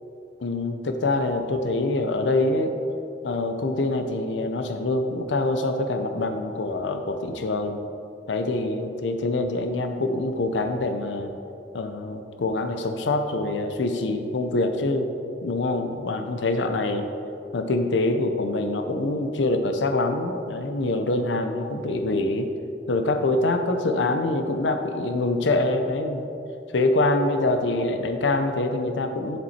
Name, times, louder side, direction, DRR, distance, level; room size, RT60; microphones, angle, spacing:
voice 1, 0.4-2.8 3.2-7.8 8.3-11.3 11.7-15.1 15.4-17.1 17.5-22.5 22.9-26.3 26.7-29.4, left 2 dB, 85° left, 6 dB, 0.6 m, -25 dB
7.6 x 7.3 x 4.2 m, 2.7 s
head